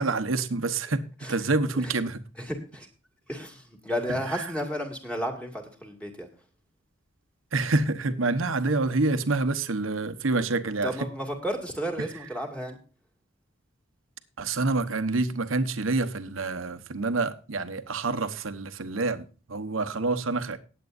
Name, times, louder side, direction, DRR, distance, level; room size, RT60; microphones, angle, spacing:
voice 1, 0.0-2.2 4.3-4.4 7.5-11.1 12.0-12.1 14.4-20.6, right 3 dB, 80° right, 1.1 m, -27 dB
voice 2, 2.4-2.9 3.3-6.3 10.8-12.8, equal, 5° left, 2.3 m, -33 dB
19.0 x 8.4 x 2.6 m
head